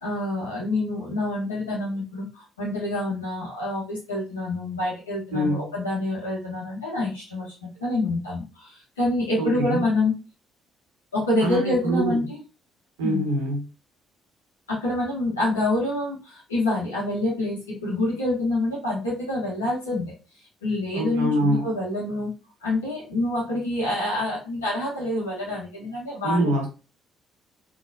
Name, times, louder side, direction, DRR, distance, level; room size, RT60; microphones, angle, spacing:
voice 1, 0.0-10.1 11.1-12.4 13.0-13.2 14.7-20.1 20.6-22.3 22.6-26.7, left 1 dB, 85° left, -6 dB, 1.2 m, -27 dB
voice 2, 5.3-5.7 9.4-9.8 11.4-12.2 13.0-13.6 20.9-21.7 26.2-26.7, equal, 75° right, 1 dB, 1.2 m, -24 dB
4.0 x 3.3 x 2.7 m, 0.32 s
figure-of-eight pair, 45°, 0 cm